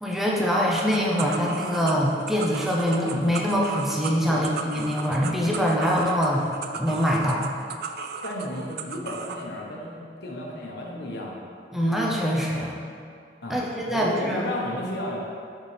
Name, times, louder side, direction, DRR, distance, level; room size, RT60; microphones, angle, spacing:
voice 1, 0.0-6.5 6.7-7.5 11.7-12.8 13.5-14.4, equal, ahead, -4 dB, 0.6 m, -24 dB
sound 1, 0.8-9.4, right 5 dB, 60° right, 0.4 m, -36 dB
voice 2, 8.2-11.5 13.4-15.2, left 1 dB, 70° left, -2 dB, 1.0 m, -33 dB
6.5 x 5.6 x 3.3 m, 2.4 s
head